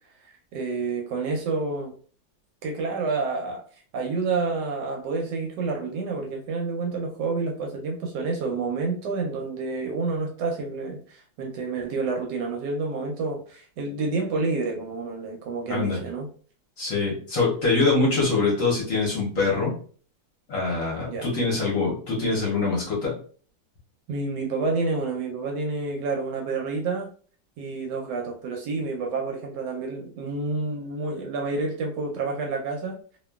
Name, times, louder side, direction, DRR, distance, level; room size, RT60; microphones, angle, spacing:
voice 1, 0.2-1.9 2.6-3.7 3.9-16.3 21.1-21.3 24.1-27.1 27.6-33.0, right 3 dB, 75° right, 1 dB, 1.1 m, -29 dB
voice 2, 15.7-16.0 16.8-19.7 20.5-23.1, left 3 dB, 55° left, -4 dB, 1.0 m, -24 dB
2.9 x 2.4 x 2.2 m, 0.43 s
omnidirectional pair, 2.1 m